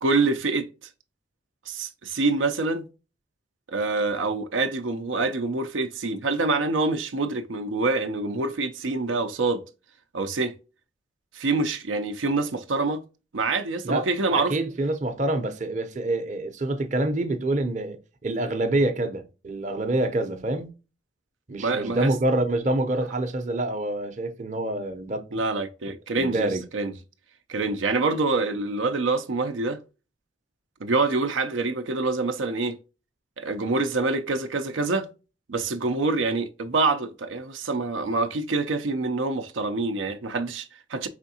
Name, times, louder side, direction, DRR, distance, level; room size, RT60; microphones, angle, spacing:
voice 1, 0.0-0.7 1.7-2.9 3.7-9.6 10.1-10.5 11.3-13.0 13.3-14.5 21.6-22.1 25.3-26.9 27.5-29.8 30.8-32.8 33.4-35.1 35.5-41.1, right 3 dB, 80° right, 0.5 m, -26 dB
voice 2, 13.8-20.7 21.5-25.3 26.2-26.6, right 2 dB, 40° right, 0.7 m, -26 dB
5.0 x 3.5 x 2.7 m
head